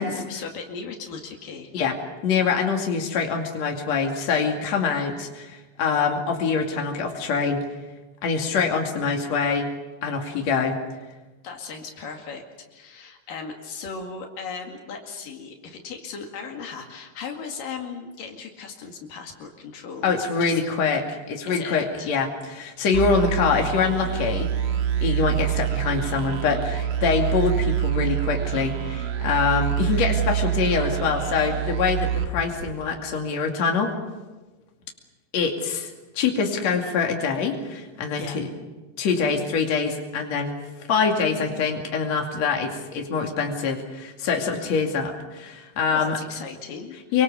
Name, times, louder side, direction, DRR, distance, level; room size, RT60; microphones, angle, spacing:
voice 1, 0.0-1.7 11.4-12.4 12.7-20.6 21.5-22.2 38.2-38.4 45.9-47.2, left 5 dB, 80° left, 2 dB, 3.9 m, -37 dB
voice 2, 2.2-7.6 8.2-9.7 10.0-10.8 20.0-24.5 25.0-33.9 35.3-38.5 39.0-40.5 40.9-46.2 47.1-47.2, left 5 dB, 55° left, 2 dB, 3.5 m, -24 dB
sound 1, 22.9-33.2, right 10 dB, 80° right, 3.2 m, -26 dB
26.5 x 24.0 x 7.0 m, 1.2 s
omnidirectional pair, 3.8 m